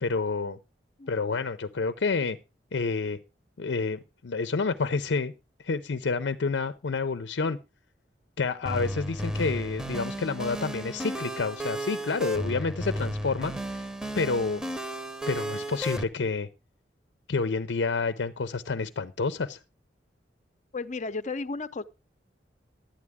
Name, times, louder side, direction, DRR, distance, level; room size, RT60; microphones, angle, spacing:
voice 1, 0.0-0.6 1.1-2.4 2.7-3.2 3.6-5.3 5.6-7.6 8.4-13.8 14.2-14.6 15.3-16.5 17.3-19.6, left 4 dB, 85° left, 0.6 m, -29 dB
sound 1, 8.6-16.0, right 1 dB, 5° right, 0.8 m, -34 dB
voice 2, 20.7-21.8, left 3 dB, 45° left, 0.7 m, -34 dB
11.5 x 9.6 x 3.5 m
head